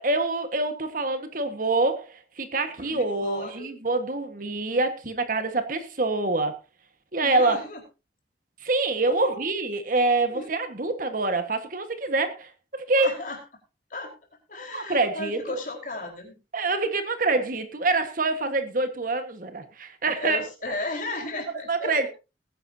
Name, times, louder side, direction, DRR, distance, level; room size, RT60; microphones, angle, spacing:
voice 1, 0.0-6.6 7.1-7.6 8.6-12.5 12.9-13.1 14.7-15.6 16.5-20.4 20.7-20.8 21.7-22.1, right 3 dB, 50° right, 8 dB, 1.5 m, -26 dB
voice 2, 2.8-3.7 4.4-4.5 7.2-7.8 9.1-9.5 10.3-10.5 12.9-13.4 13.9-14.1 14.5-16.4 20.2-22.1, left 2 dB, 50° left, 2 dB, 4.5 m, -35 dB
19.5 x 10.5 x 2.8 m, 0.29 s
head